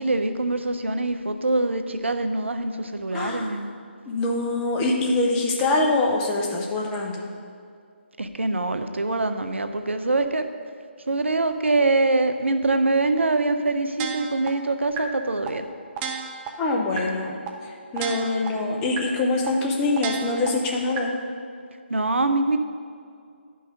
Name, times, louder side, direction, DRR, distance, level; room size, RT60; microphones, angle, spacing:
voice 1, 0.0-3.7 8.2-10.5 11.1-15.7 21.9-22.6, right 2 dB, 75° right, 8 dB, 0.7 m, -24 dB
voice 2, 3.1-3.5 4.1-7.3 16.6-17.4 17.6-21.1, left 2 dB, 15° left, 0 dB, 0.9 m, -24 dB
sound 1, 14.0-14.5 15.0-15.1 15.5-15.6 16.0-16.5 17.0-17.1 17.5-17.6 18.0-18.5 19.0-19.1 19.5-19.6 20.0-20.5 21.0-21.1, right 7 dB, 15° right, 0.6 m, -30 dB
10.5 x 5.5 x 5.1 m, 2.2 s
figure-of-eight pair, 150°, 6 cm